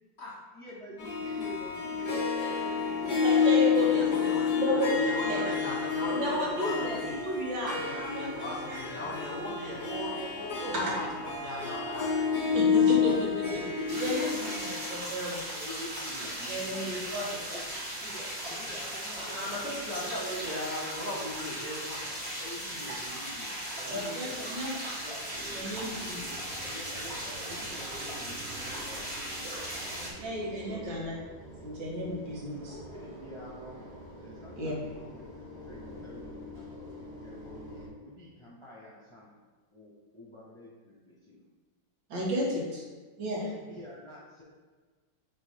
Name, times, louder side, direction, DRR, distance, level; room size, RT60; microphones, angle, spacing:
voice 1, 0.5-4.5 8.8-9.6 9.8-10.2 13.5-14.3 15.5-17.1 17.5-19.9 22.4-24.6 25.0-25.7 25.9-30.0 30.6-30.9 32.7-33.9 34.2-36.9 37.2-39.3 39.7-41.4 43.4-44.4, left 1 dB, 20° left, -6 dB, 1.2 m, -47 dB
Harp, 1.0-15.0, left 6 dB, 75° left, 0.4 m, -29 dB
voice 2, 3.2-5.4 6.1-8.8 10.8-10.9 12.5-13.6 14.0-15.4 16.5-17.4 23.9-24.7 25.5-26.2 30.2-31.2 31.6-32.7 34.6-34.7 42.1-42.8 43.2-43.4, equal, 80° right, -4 dB, 2.2 m, -33 dB
voice 3, 3.8-7.2 7.7-12.6 19.2-22.1, left 1 dB, 45° left, -4 dB, 1.1 m, -38 dB
sound 1, 13.9-30.1, right 1 dB, 35° right, 2.4 m, -38 dB
sound 2, 25.3-37.9, equal, 55° right, 2.1 m, -47 dB
8.4 x 3.7 x 3.7 m, 1.4 s
omnidirectional pair, 2.0 m